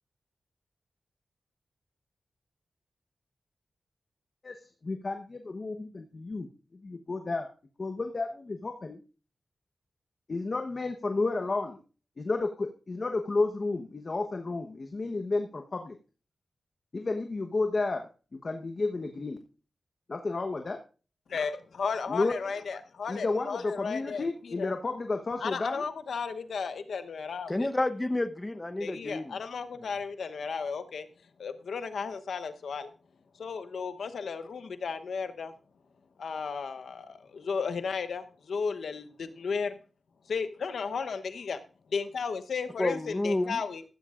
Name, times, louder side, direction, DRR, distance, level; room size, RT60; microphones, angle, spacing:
voice 1, 4.4-6.5 6.7-7.5 7.8-9.0 10.3-11.8 12.2-16.0 16.9-18.1 18.4-19.4 20.1-20.8 22.1-22.5 23.1-25.8, left 3 dB, 45° left, 1.1 m, -32 dB
voice 2, 21.3-24.7 25.4-27.7 28.8-31.1 31.4-32.9 33.3-35.5 36.2-39.8 40.3-41.6 41.9-43.8, left 5 dB, 85° left, 1.0 m, -34 dB
voice 3, 27.5-29.4 42.8-43.6, left 2 dB, 20° left, 0.9 m, -30 dB
14.5 x 14.5 x 2.5 m
wide cardioid pair, 75°, 0 cm